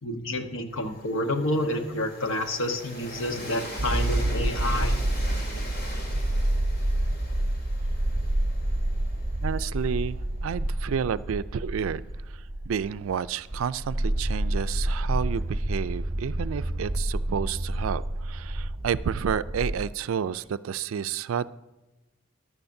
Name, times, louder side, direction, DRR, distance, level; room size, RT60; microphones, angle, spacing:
voice 1, 0.0-5.0, left 1 dB, 70° left, 6 dB, 1.1 m, -29 dB
Train, 0.7-10.5, left 1 dB, 50° left, 2.6 m, -42 dB
sound 1, 3.8-19.7, right 1 dB, 30° right, 0.7 m, -28 dB
voice 2, 9.4-12.0 12.7-21.5, right 7 dB, 85° right, 15 dB, 0.4 m, -30 dB
14.5 x 11.0 x 2.7 m, 1.1 s
head